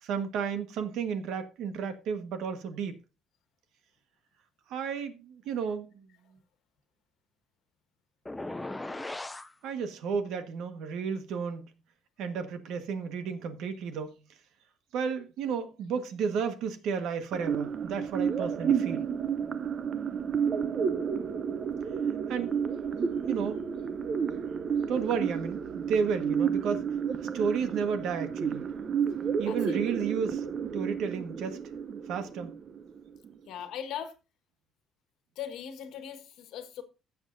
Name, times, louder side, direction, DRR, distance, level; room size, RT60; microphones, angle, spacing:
voice 1, 0.0-3.0 4.7-6.1 9.6-11.7 12.2-14.1 14.9-19.1 22.3-22.6 23.2-23.6 24.9-26.9 27.3-28.7 29.4-30.4 30.7-31.6 32.1-32.5, right 6 dB, 70° right, 1.4 m, -32 dB
sound 1, 8.3-9.5, left 2 dB, 10° left, 0.4 m, -37 dB
sound 2, 17.3-33.3, right 7 dB, 35° right, 0.6 m, -31 dB
voice 2, 29.5-30.1 33.5-34.1 35.4-36.8, left 9 dB, 70° left, 1.4 m, -39 dB
16.0 x 7.3 x 2.6 m
cardioid pair, 165°, 0 cm